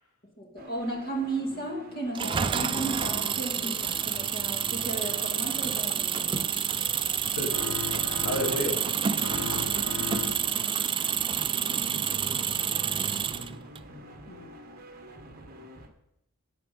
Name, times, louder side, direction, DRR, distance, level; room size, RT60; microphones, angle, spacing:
voice 1, 0.4-6.5, right 2 dB, 45° left, 1 dB, 2.2 m, -34 dB
sound 1, 0.6-15.9, equal, 45° right, 1.4 m, -47 dB
Engine, 2.1-13.8, right 8 dB, 25° right, 0.3 m, -29 dB
voice 2, 7.4-7.8 8.2-8.8 11.9-13.6 13.9-14.5, left 1 dB, 85° left, 2 dB, 1.9 m, -36 dB
sound 2, 7.5-8.9 9.2-10.7, left 6 dB, 60° left, 0.8 m, -37 dB
11.5 x 7.4 x 5.4 m, 0.82 s
head